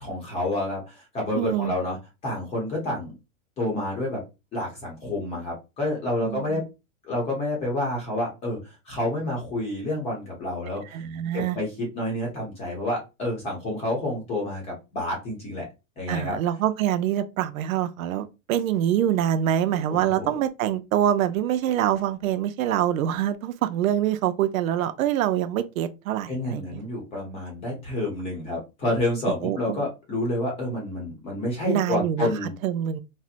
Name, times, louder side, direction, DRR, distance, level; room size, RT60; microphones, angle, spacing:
voice 1, 0.0-2.0 2.2-3.1 3.6-4.2 4.5-6.6 7.0-11.0 11.3-15.7 16.0-16.4 19.9-20.3 26.3-32.5, left 1 dB, 15° left, 0.8 m, -29 dB
voice 2, 1.4-1.7 6.2-6.6 10.7-11.6 16.1-26.8 29.4-29.9 31.7-32.3 32.6-33.0, right 11 dB, 75° right, 0.6 m, -25 dB
4.3 x 2.1 x 2.5 m
supercardioid pair, 170°, 41 cm